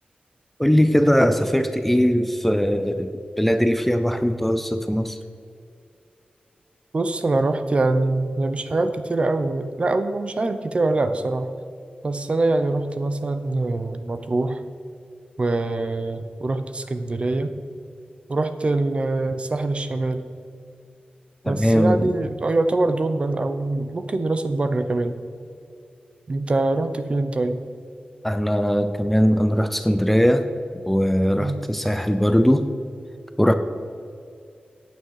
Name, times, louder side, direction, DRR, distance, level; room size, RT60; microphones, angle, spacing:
voice 1, 0.6-3.1 3.4-5.2 21.4-22.1 28.2-30.5 30.9-32.7 33.4-33.5, equal, 5° left, 9 dB, 0.5 m, -20 dB
voice 2, 6.9-11.5 12.0-14.6 15.4-17.5 18.3-20.2 21.5-25.2 26.3-27.6 31.4-31.6, right 2 dB, 40° right, 9 dB, 0.8 m, -24 dB
15.0 x 9.2 x 4.9 m, 2.5 s
wide cardioid pair, 140°, 3 cm